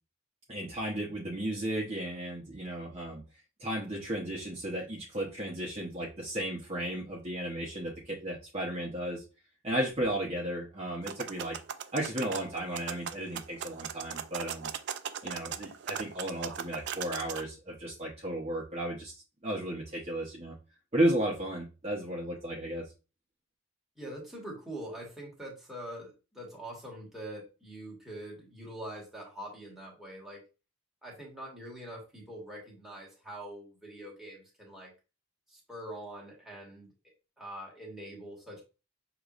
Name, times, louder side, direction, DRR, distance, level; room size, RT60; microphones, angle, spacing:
voice 1, 0.5-3.2 3.6-9.2 9.6-11.6 11.9-14.7 15.2-20.6 20.9-22.8, right 1 dB, 30° right, -4 dB, 0.9 m, -34 dB
sound 1, 11.0-17.4, right 8 dB, 55° right, 0.3 m, -39 dB
voice 2, 24.0-30.4 31.0-34.9 35.5-36.9 37.4-38.6, right 1 dB, ahead, -4 dB, 1.5 m, -44 dB
6.6 x 3.0 x 2.5 m, 0.31 s
head